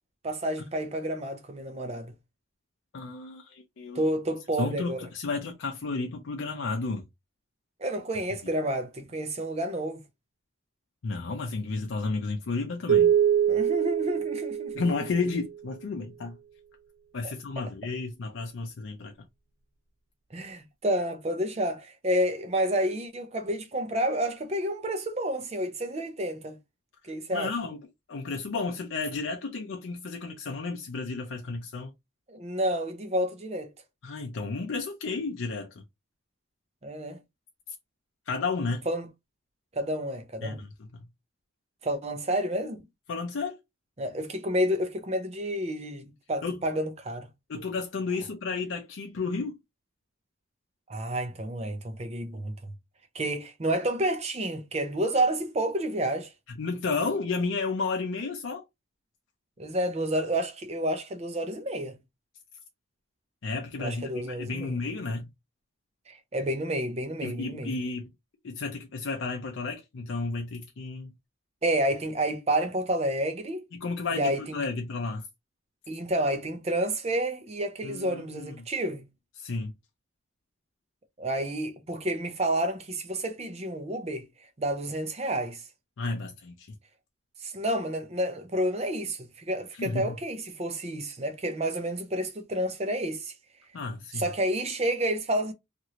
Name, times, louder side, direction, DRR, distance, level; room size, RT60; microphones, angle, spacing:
voice 1, 0.2-2.1 3.9-5.0 7.8-10.0 13.5-14.9 20.3-26.6 27.0-27.5 32.3-33.7 36.8-37.2 38.9-39.1 39.7-40.6 41.8-42.8 44.0-47.3 50.9-52.7 53.1-56.3 59.6-62.0 63.8-64.8 66.1-67.7 71.6-73.6 74.1-74.6 75.9-79.1 81.2-84.3 84.6-85.6 87.4-93.3 94.1-95.5, right 1 dB, 30° right, 0.5 m, -30 dB
voice 2, 2.9-4.0 4.6-7.0 11.0-13.1 14.7-16.4 17.1-19.1 27.3-27.8 28.1-31.9 34.0-35.8 38.3-38.8 40.4-41.1 43.1-43.6 46.4-46.6 47.5-49.6 56.5-58.6 63.4-65.3 67.2-68.1 68.4-71.1 73.7-75.3 77.8-78.7 79.4-79.7 86.0-86.7 89.7-90.2 93.7-94.3, left 4 dB, 75° left, 0.5 m, -32 dB
sound 1, 12.9-15.5, right 9 dB, 85° right, 0.5 m, -24 dB
3.0 x 2.5 x 2.8 m
head